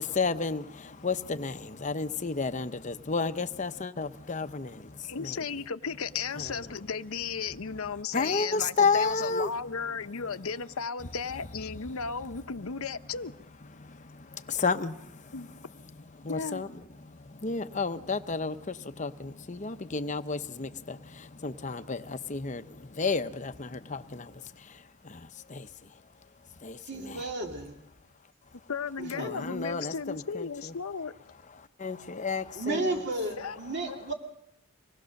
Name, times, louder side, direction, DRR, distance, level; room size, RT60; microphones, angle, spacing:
voice 1, 0.0-5.3 8.1-9.5 13.8-15.3 16.2-16.7 17.0-25.7 26.6-27.2 29.1-30.5 31.8-32.9, left 4 dB, 35° left, 0.8 m, -32 dB
voice 2, 5.0-13.3 15.3-15.5 16.3-16.6 28.7-31.1 33.4-33.6 33.9-34.0, left 5 dB, 85° left, 0.9 m, -35 dB
voice 3, 26.8-27.8 29.0-29.3 29.8-29.9 32.5-34.1, right 2 dB, 55° right, 2.6 m, -33 dB
25.0 x 19.0 x 6.5 m
head